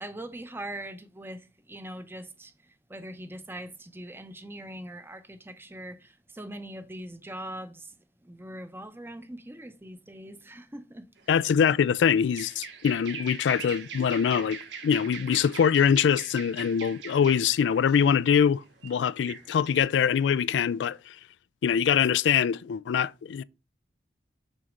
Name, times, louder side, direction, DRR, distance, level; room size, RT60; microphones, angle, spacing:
voice 1, 0.0-11.1, right 1 dB, 15° right, 0.7 m, -42 dB
sound 1, 11.2-11.3 11.5-11.6 11.7-11.8 12.1-18.1 18.4-19.8, right 6 dB, 80° right, 1.3 m, -42 dB
voice 2, 11.3-21.2 21.6-23.4, left 7 dB, 80° left, 0.3 m, -24 dB
6.4 x 4.1 x 5.0 m
head